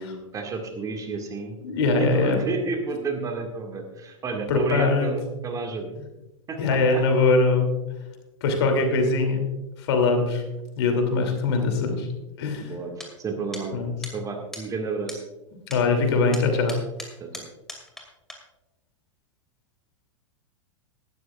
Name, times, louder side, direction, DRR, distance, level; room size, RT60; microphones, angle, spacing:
voice 1, 0.0-1.6 1.8-5.9 6.5-6.8 12.6-12.9 13.2-13.8 14.1-15.2 17.2-17.4, right 4 dB, 20° right, 3 dB, 1.9 m, -31 dB
voice 2, 1.6-2.4 4.5-5.1 6.6-7.7 8.4-9.4 9.8-10.4 10.8-12.1 12.4-12.7 13.7-13.9 15.7-16.8, left 3 dB, 50° left, 5 dB, 2.8 m, -22 dB
sound 1, 13.0-13.1 13.5-13.6 14.0-14.1 14.5-14.6 15.1-15.2 15.7-15.8 16.3-18.0 18.3-18.4, left 1 dB, 5° left, 2.3 m, -38 dB
18.5 x 12.5 x 2.4 m, 1.0 s
figure-of-eight pair, 95°, 17 cm